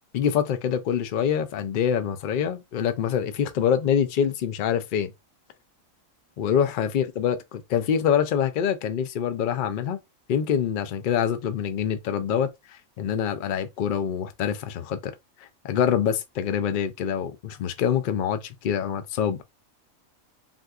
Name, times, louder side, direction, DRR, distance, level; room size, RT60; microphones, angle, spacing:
voice 1, 0.1-5.1 6.4-10.0 10.3-12.5 13.0-15.1 15.6-19.4, left 8 dB, 70° left, 0.4 m, -25 dB
3.7 x 2.6 x 2.3 m
omnidirectional pair, 1.5 m